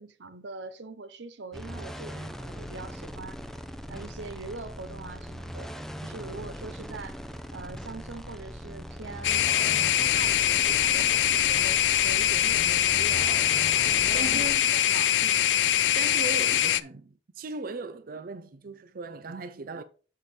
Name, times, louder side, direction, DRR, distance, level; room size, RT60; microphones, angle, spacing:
voice 1, 0.0-3.4 3.9-5.7 6.0-7.2 7.5-13.4 13.7-15.5, right 3 dB, 90° right, 0.7 m, -42 dB
sound 1, 1.5-14.6, equal, ahead, 0.6 m, -40 dB
sound 2, 9.2-16.8, left 12 dB, 80° left, 0.4 m, -23 dB
voice 2, 14.1-14.6 15.9-19.8, right 3 dB, 55° right, 0.5 m, -37 dB
7.1 x 6.5 x 3.2 m
head